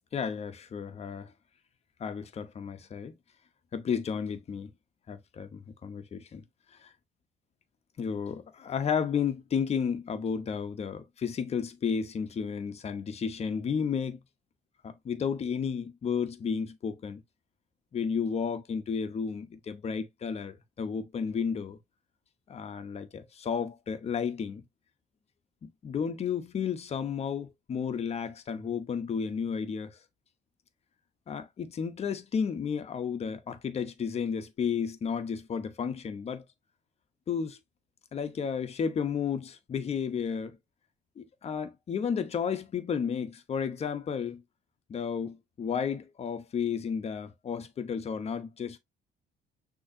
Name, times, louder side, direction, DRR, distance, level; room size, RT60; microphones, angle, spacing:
voice 1, 0.1-1.3 2.0-3.1 3.7-4.7 5.1-6.4 6.8-6.9 8.0-14.2 14.8-17.2 17.9-21.8 22.5-24.6 25.6-29.9 31.3-36.4 37.3-37.6 38.1-40.6 41.2-44.4 44.9-48.8, left 6 dB, 40° left, 1.0 m, -32 dB
6.4 x 3.1 x 2.7 m
cardioid pair, 110°, 17 cm